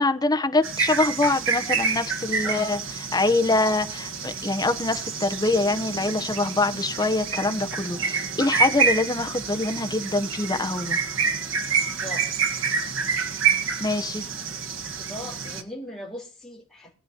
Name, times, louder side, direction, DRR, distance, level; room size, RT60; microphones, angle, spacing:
voice 1, 0.0-2.8 3.1-11.0 13.8-14.2, left 2 dB, 20° left, 0.9 m, -24 dB
sound 1, 0.6-15.6, right 5 dB, 65° right, 1.6 m, -28 dB
voice 2, 2.4-2.9 12.0-12.3 15.0-16.9, left 1 dB, ahead, 4.0 m, -38 dB
22.0 x 8.8 x 2.9 m
head